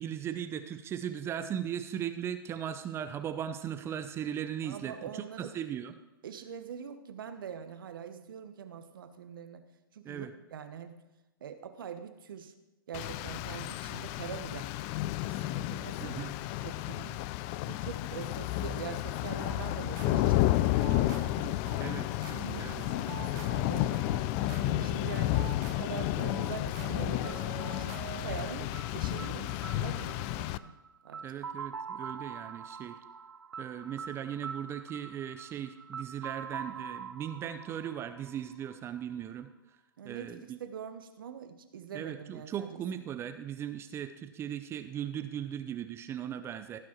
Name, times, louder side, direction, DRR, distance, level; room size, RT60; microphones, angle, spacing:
voice 1, 0.0-5.9 10.0-10.3 16.0-16.3 21.7-22.2 22.6-22.8 31.2-33.0 33.6-39.5 40.0-40.6 41.9-46.8, right 9 dB, 20° right, 10 dB, 0.6 m, -38 dB
voice 2, 4.6-5.5 6.2-9.6 9.9-11.0 11.4-12.5 12.9-14.7 15.2-16.2 16.6-17.2 17.7-21.5 22.5-24.5 24.8-25.4 25.8-27.9 28.2-30.7 31.0-31.2 40.0-42.8, right 8 dB, 65° right, 9 dB, 1.2 m, -44 dB
Rain, 12.9-30.6, left 16 dB, 35° left, 0.3 m, -32 dB
sound 1, 19.4-28.9, right 6 dB, 45° right, 1.6 m, -45 dB
sound 2, 27.2-39.0, right 6 dB, 90° right, 0.6 m, -44 dB
15.5 x 6.2 x 4.5 m, 0.99 s
hypercardioid pair, 120°, 12 cm